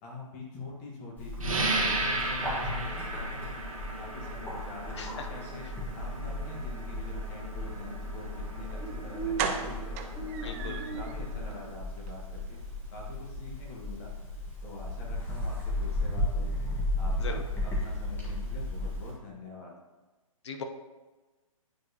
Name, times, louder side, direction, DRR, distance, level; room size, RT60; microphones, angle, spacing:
voice 1, 0.0-3.6 4.0-5.7 5.9-10.0 10.4-12.6 12.9-14.1 14.6-16.6 17.0-19.7, left 2 dB, 30° left, -3 dB, 1.5 m, -45 dB
Bird, 1.2-19.1, left 1 dB, 10° left, 1.7 m, -35 dB
sound 1, 1.4-11.7, right 2 dB, 70° right, 1.4 m, -36 dB
sound 2, 8.7-8.8 9.4-11.1 11.5-11.6 12.0-12.1 12.4-12.5, right 7 dB, 25° right, 0.4 m, -35 dB
voice 2, 10.4-10.8 17.2-17.4 20.4-20.6, left 5 dB, 55° left, 5 dB, 0.8 m, -38 dB
9.3 x 4.6 x 2.9 m, 1.2 s
figure-of-eight pair, 125°, 18 cm